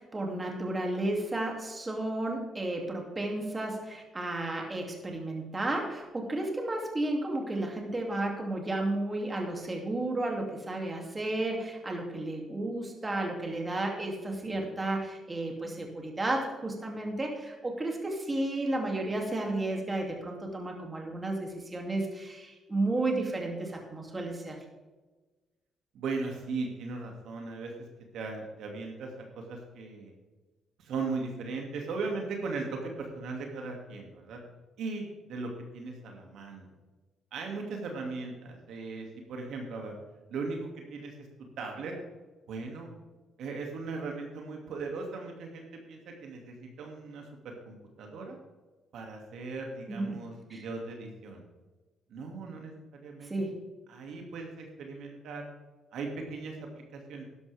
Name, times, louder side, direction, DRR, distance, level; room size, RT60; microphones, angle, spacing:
voice 1, 0.0-24.6 49.9-50.6 53.2-53.6, right 2 dB, 20° right, 1 dB, 2.7 m, -33 dB
voice 2, 14.4-14.8 25.9-27.7 28.1-30.1 30.8-34.4 34.8-36.7 37.3-39.9 40.3-41.3 41.6-41.9 42.5-42.9 43.4-48.4 48.9-51.4 52.1-52.7 53.0-53.3 53.9-55.5 55.9-56.6 56.9-57.2, right 3 dB, 75° right, 1 dB, 2.4 m, -38 dB
12.5 x 11.5 x 3.5 m, 1.2 s
cardioid pair, 90°, 0 cm